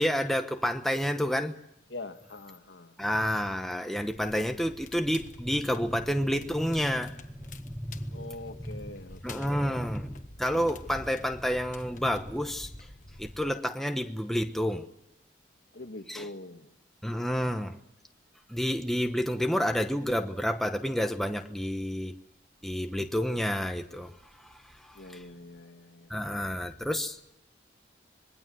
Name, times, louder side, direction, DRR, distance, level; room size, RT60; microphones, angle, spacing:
voice 1, 0.0-1.6 3.0-8.2 9.2-12.9 13.2-14.9 16.1-16.3 17.0-17.8 18.5-22.1 22.6-25.0 26.1-27.2, equal, ahead, 1.1 m, -30 dB
voice 2, 1.9-3.0 8.1-9.8 15.7-16.7 24.9-26.1, left 2 dB, 75° left, 1.8 m, -44 dB
Crackle, 4.1-13.5, left 2 dB, 40° left, 1.5 m, -49 dB
26.5 x 21.5 x 7.8 m
head